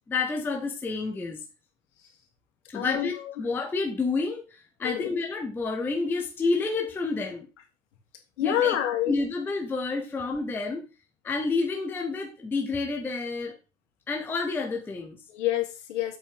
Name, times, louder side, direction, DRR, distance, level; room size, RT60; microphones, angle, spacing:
voice 1, 0.1-1.4 2.7-7.5 8.4-8.8 9.1-10.8 11.2-13.5 14.1-15.2, left 3 dB, 5° left, 2 dB, 0.7 m, -29 dB
voice 2, 2.7-3.1 4.8-5.1 8.4-9.1 15.3-16.2, left 11 dB, 65° left, 4 dB, 2.7 m, -27 dB
7.5 x 5.4 x 5.1 m, 0.31 s
hypercardioid pair, 150°, 39 cm